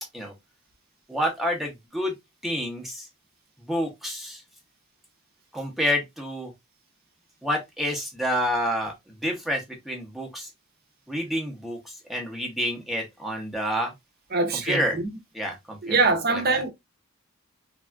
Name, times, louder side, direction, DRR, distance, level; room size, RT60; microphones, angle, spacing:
voice 1, 1.1-2.1 2.4-3.1 3.7-4.4 5.5-6.5 7.4-8.9 9.2-10.5 11.1-13.9 14.6-15.0 15.3-16.0 16.3-16.6, equal, ahead, 0.6 m, -28 dB
voice 2, 14.3-15.1 15.8-16.7, right 3 dB, 45° right, 0.6 m, -23 dB
3.3 x 2.4 x 2.3 m
head